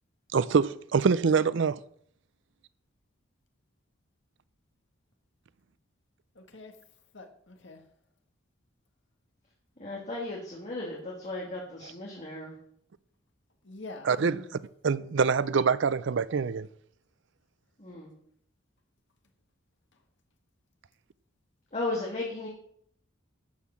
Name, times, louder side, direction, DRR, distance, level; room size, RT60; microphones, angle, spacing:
voice 1, 0.3-1.8 14.1-14.4 14.8-16.7, right 5 dB, 60° right, 0.4 m, -25 dB
voice 2, 6.4-6.8 7.1-7.8 13.6-14.6, left 2 dB, 60° left, 1.8 m, -45 dB
voice 3, 9.8-12.5 17.8-18.1 21.7-22.5, left 2 dB, 35° left, 2.5 m, -35 dB
12.5 x 5.7 x 7.2 m
head